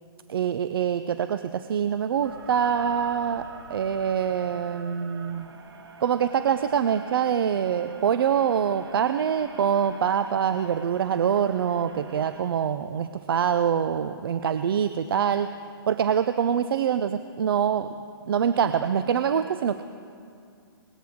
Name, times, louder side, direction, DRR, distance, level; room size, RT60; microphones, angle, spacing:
voice 1, 0.3-5.5 6.0-15.5 15.9-17.9 18.3-19.8, right 8 dB, 65° right, 11 dB, 0.5 m, -25 dB
sound 1, 2.2-12.4, right 5 dB, 90° right, 1.4 m, -45 dB
19.0 x 13.5 x 3.6 m, 2.3 s
hypercardioid pair, 150°, 13 cm